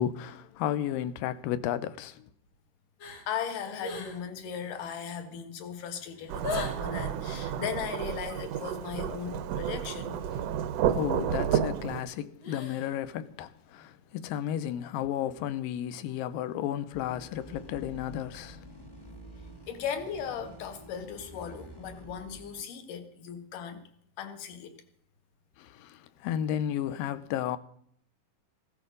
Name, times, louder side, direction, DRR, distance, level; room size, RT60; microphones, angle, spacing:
voice 1, 0.0-2.3 10.8-18.6 25.6-27.6, left 10 dB, 90° left, 2.5 m, -33 dB
sound 1, 3.0-4.3 4.5-5.0 5.6-5.7 5.9-6.9 12.3-13.0 13.3-13.4, left 4 dB, 50° left, 2.8 m, -39 dB
voice 2, 3.3-10.2 10.8-10.9 19.7-23.8 24.2-24.7, left 7 dB, 70° left, 3.0 m, -37 dB
Thunderstorm / Rain, 6.3-12.0, right 9 dB, 85° right, 1.4 m, -31 dB
sound 2, 16.9-22.6, equal, 15° left, 0.7 m, -48 dB
16.0 x 13.0 x 5.2 m
omnidirectional pair, 4.0 m